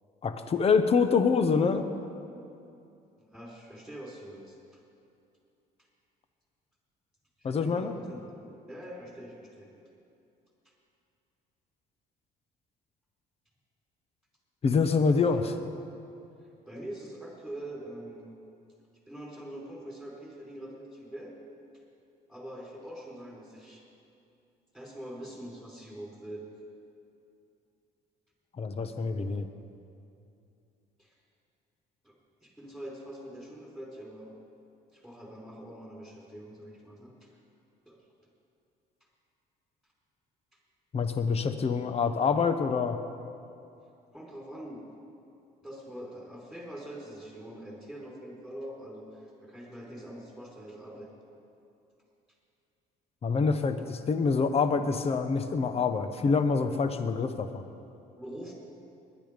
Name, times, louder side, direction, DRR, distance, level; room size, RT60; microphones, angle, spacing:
voice 1, 0.2-1.9 7.4-8.0 14.6-15.5 28.6-29.5 40.9-43.0 53.2-57.6, left 5 dB, 35° left, 9 dB, 1.0 m, -26 dB
voice 2, 3.2-4.6 7.4-9.7 15.1-15.4 16.7-18.4 19.1-21.4 22.3-23.8 24.7-26.5 31.0-31.1 32.0-32.1 32.4-34.3 34.9-37.3 37.9-38.0 44.1-44.9 45.6-51.1 58.1-58.5, right 1 dB, ahead, -3 dB, 4.5 m, -44 dB
20.5 x 11.0 x 5.2 m, 2.6 s
cardioid pair, 110°, 17 cm